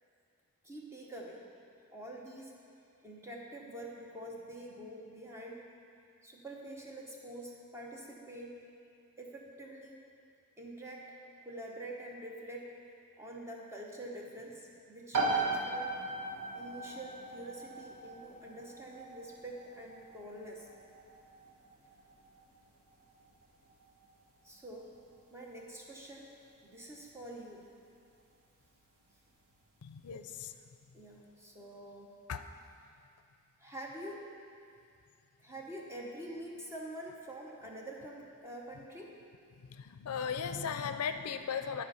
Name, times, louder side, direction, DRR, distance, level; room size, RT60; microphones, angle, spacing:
voice 1, 0.6-1.4 1.9-2.5 3.0-5.7 6.2-8.6 9.2-10.0 10.6-11.1 11.4-12.8 13.2-16.0 16.5-20.7 24.4-24.9 25.3-26.3 26.6-27.6 30.9-32.2 33.6-34.3 35.4-39.1, right 1 dB, 10° right, -2 dB, 0.9 m, -46 dB
sound 1, 15.1-29.6, right 3 dB, 75° right, 1.3 m, -40 dB
voice 2, 29.8-30.5 32.3-32.4 39.7-41.8, left 6 dB, 80° left, 9 dB, 0.4 m, -37 dB
11.5 x 4.3 x 5.6 m, 2.4 s
head